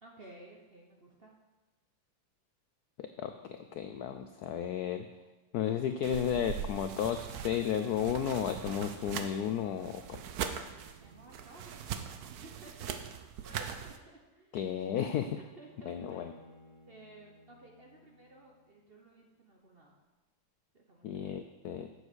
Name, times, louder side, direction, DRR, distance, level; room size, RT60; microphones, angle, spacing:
voice 1, 0.0-1.3 11.0-12.1 12.4-12.9 13.4-14.6 15.4-16.4 16.9-19.9 20.7-21.1, right 2 dB, 40° right, 0 dB, 0.9 m, -55 dB
voice 2, 3.0-5.1 5.5-10.2 14.5-15.4 15.9-16.3 21.0-21.9, left 9 dB, 75° left, 8 dB, 0.8 m, -33 dB
sound 1, 6.0-14.0, right 8 dB, 65° right, 1.0 m, -41 dB
Bowed string instrument, 15.7-19.0, left 2 dB, 20° right, 1.5 m, -59 dB
8.2 x 7.1 x 6.2 m, 1.1 s
omnidirectional pair, 2.2 m